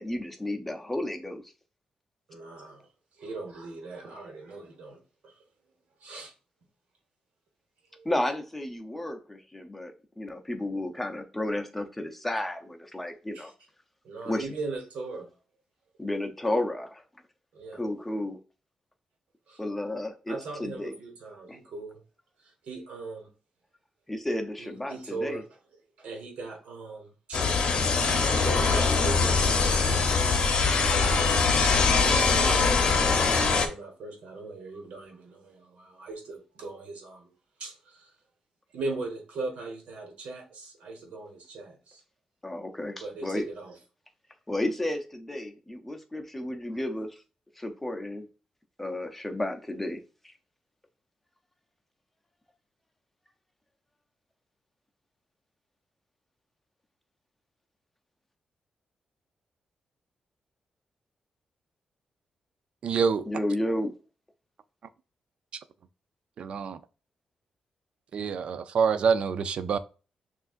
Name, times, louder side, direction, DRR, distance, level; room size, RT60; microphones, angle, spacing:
voice 1, 0.0-1.4 8.0-13.5 14.2-14.5 16.0-17.0 17.7-18.4 19.6-20.9 21.5-21.6 24.1-25.4 42.4-43.4 44.5-47.2 47.6-48.3 48.8-50.0 63.3-63.9, left 1 dB, 10° left, 0.5 m, -32 dB
voice 2, 2.3-2.9 3.2-5.3 6.0-6.3 7.9-8.1 13.3-13.5 14.0-15.3 17.5-17.8 19.5-19.6 20.3-22.0 22.4-23.3 24.6-25.4 26.0-27.5 28.3-37.3 37.6-38.1 38.7-42.0 43.0-43.8, right 3 dB, 80° right, 1.2 m, -39 dB
sound 1, 27.3-33.7, left 4 dB, 50° left, 0.7 m, -23 dB
voice 3, 62.8-63.3 66.4-66.8 68.1-69.8, right 6 dB, 55° right, 0.3 m, -26 dB
6.2 x 2.5 x 2.4 m
wide cardioid pair, 155°, 2 cm